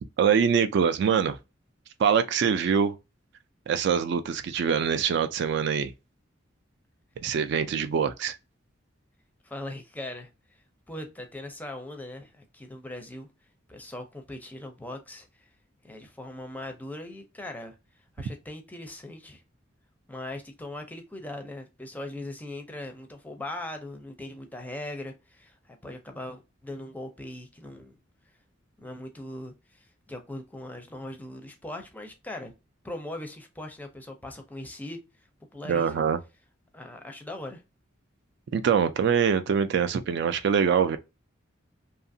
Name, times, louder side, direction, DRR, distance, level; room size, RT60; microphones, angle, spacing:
voice 1, 0.2-1.4 2.0-3.0 3.7-5.9 7.2-8.4 35.6-36.2 38.5-41.0, right 7 dB, 60° right, 0.3 m, -24 dB
voice 2, 9.4-10.3 10.9-13.3 13.7-15.5 15.8-17.7 18.2-19.4 20.1-28.0 28.8-32.5 32.8-35.0 35.5-36.0 36.7-37.6, left 1 dB, 10° left, 0.5 m, -40 dB
2.7 x 2.4 x 2.6 m
head